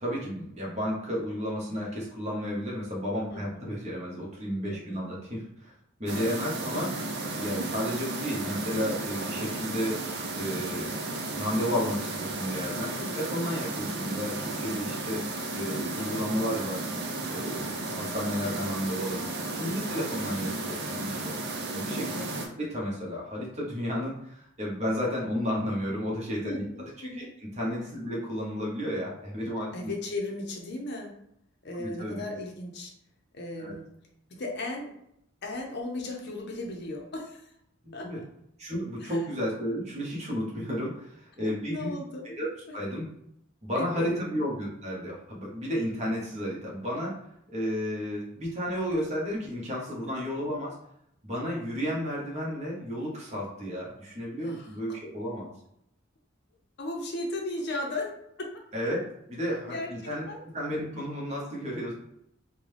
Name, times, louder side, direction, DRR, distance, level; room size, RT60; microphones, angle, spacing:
voice 1, 0.0-5.7 6.0-7.0 7.3-10.0 10.3-10.9 11.3-15.2 15.5-16.9 17.3-19.3 19.6-21.3 21.7-22.3 22.6-26.9 27.1-29.9 31.8-32.2 33.6-33.7 37.8-38.2 38.6-41.9 42.2-42.5 42.7-43.1 43.6-47.2 47.5-50.8 51.2-55.5 58.7-59.0 59.3-60.3 60.5-61.9, equal, 35° right, -4 dB, 1.1 m, -32 dB
voice 2, 3.3-3.8 4.6-5.1 6.1-6.4 12.9-13.2 19.1-19.6 20.4-20.5 22.1-22.5 26.4-27.3 29.7-31.1 31.6-32.9 33.3-33.9 34.3-34.9 35.4-37.5 37.9-38.3 39.0-39.2 41.6-42.2 43.7-44.2 49.9-50.2 54.4-54.8 56.8-58.5 59.7-59.9 60.3-60.4, left 2 dB, 55° left, 1 dB, 0.7 m, -36 dB
sound 1, 6.0-22.5, right 2 dB, 55° right, 0.6 m, -34 dB
3.7 x 2.3 x 3.3 m, 0.75 s
head